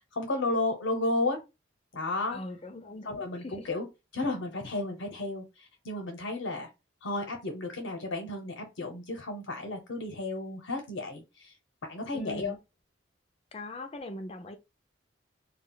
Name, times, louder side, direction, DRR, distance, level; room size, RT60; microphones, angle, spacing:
voice 1, 0.1-1.4 1.9-2.4 3.0-3.9 4.1-6.7 7.0-11.5 11.8-12.5, left 2 dB, 85° left, 0.7 m, -33 dB
voice 2, 2.3-3.5 12.1-12.6 13.5-14.6, left 1 dB, 30° left, 0.4 m, -40 dB
2.3 x 2.1 x 3.7 m
head